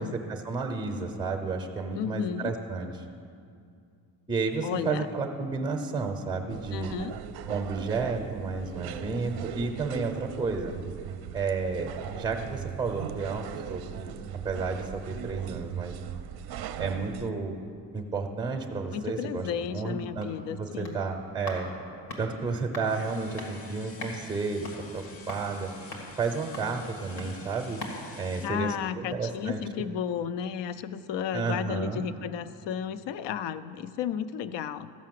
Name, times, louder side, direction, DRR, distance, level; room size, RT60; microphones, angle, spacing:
voice 1, 0.0-2.9 4.3-6.9 7.5-10.7 11.3-14.1 14.4-16.0 16.8-17.6 17.9-20.3 20.6-21.7 22.2-24.7 24.9-25.7 26.2-27.8 28.2-29.6 31.3-32.0, right 4 dB, 10° right, 2 dB, 0.6 m, -32 dB
voice 2, 1.9-2.6 4.6-5.1 6.7-7.2 18.9-21.0 28.4-34.9, left 8 dB, 65° left, 15 dB, 0.5 m, -33 dB
sound 1, 6.5-17.3, right 9 dB, 55° right, 0.5 m, -39 dB
sound 2, 20.1-29.4 29.7-29.8, left 1 dB, 90° left, 2.2 m, -44 dB
sound 3, 22.8-28.5, left 3 dB, 30° left, 0.7 m, -49 dB
13.5 x 5.7 x 7.5 m, 2.4 s
cardioid pair, 155°, 46 cm